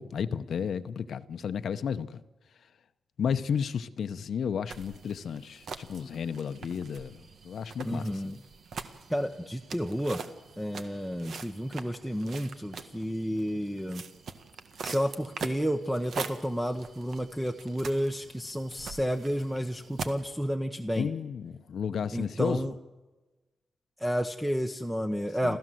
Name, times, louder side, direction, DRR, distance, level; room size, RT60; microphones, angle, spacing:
voice 1, 0.0-2.2 3.2-8.4 21.0-22.7 25.4-25.6, left 7 dB, 70° left, 0.9 m, -33 dB
sound 1, 4.7-20.3, right 5 dB, 65° right, 1.6 m, -43 dB
voice 2, 7.8-8.4 9.1-10.2 10.6-14.0 14.8-21.1 22.1-22.7 24.0-25.6, equal, 5° right, 1.0 m, -31 dB
29.5 x 14.0 x 7.8 m
wide cardioid pair, 120°, 0 cm